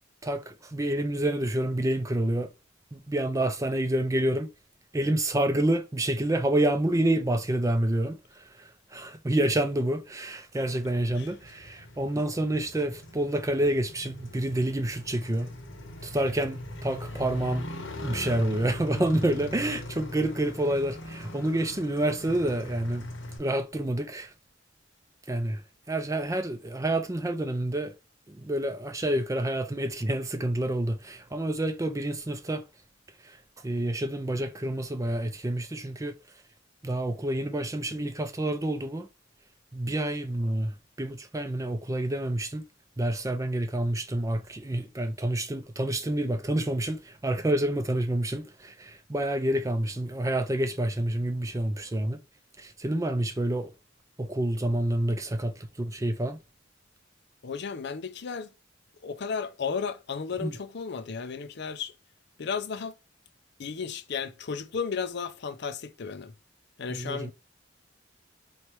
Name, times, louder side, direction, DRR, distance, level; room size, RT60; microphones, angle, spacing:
voice 1, 0.2-2.5 2.9-4.5 4.9-8.4 8.9-15.5 16.0-17.7 18.0-23.1 23.4-24.3 25.3-25.6 25.9-27.9 28.3-32.6 33.6-36.1 36.8-39.1 39.7-42.6 43.0-52.2 52.6-53.7 54.2-56.4 60.4-60.5 66.9-67.3, right 1 dB, 15° right, 0.5 m, -28 dB
Motorcycle, 10.8-23.4, left 1 dB, 85° left, 1.4 m, -40 dB
voice 2, 57.4-58.5 59.0-61.9 62.4-62.9 63.6-66.3 66.8-67.3, left 6 dB, 60° left, 0.5 m, -34 dB
4.3 x 3.2 x 3.0 m
head